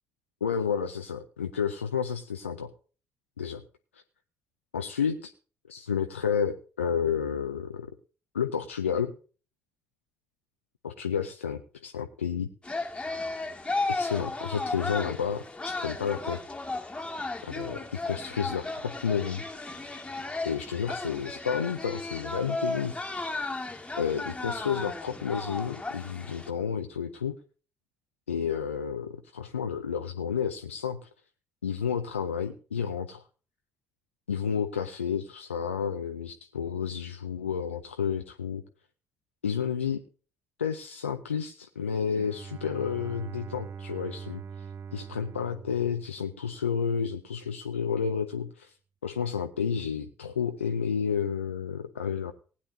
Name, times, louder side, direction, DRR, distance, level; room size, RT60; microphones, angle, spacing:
voice 1, 0.4-2.7 3.4-3.6 3.9-4.0 4.7-5.3 5.7-7.9 8.3-9.1 10.8-12.5 13.9-16.4 17.4-19.4 20.4-23.4 24.0-27.4 28.3-31.1 31.6-33.2 34.3-38.6 39.4-40.0 40.6-48.7 49.0-52.3, left 7 dB, 85° left, 6 dB, 0.5 m, -31 dB
sound 1, 12.6-26.5, left 2 dB, 15° left, 1.9 m, -35 dB
Bowed string instrument, 42.1-46.8, right 6 dB, 40° right, 0.4 m, -43 dB
19.0 x 9.7 x 2.7 m, 0.37 s
figure-of-eight pair, 45°, 7 cm